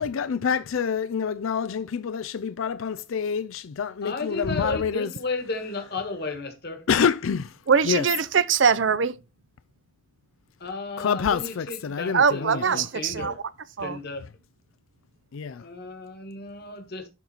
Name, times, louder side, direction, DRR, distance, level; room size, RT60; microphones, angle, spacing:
voice 1, 0.0-5.1 6.9-7.6 7.8-8.1 11.0-12.9 15.3-15.6, left 6 dB, 85° left, 0.4 m, -27 dB
voice 2, 4.0-6.9 10.6-13.4 13.8-14.3 15.6-17.1, left 3 dB, 55° left, 1.6 m, -34 dB
voice 3, 7.7-9.1 12.1-13.3 13.8-14.0, right 6 dB, 65° right, 0.6 m, -22 dB
11.5 x 4.1 x 4.4 m
head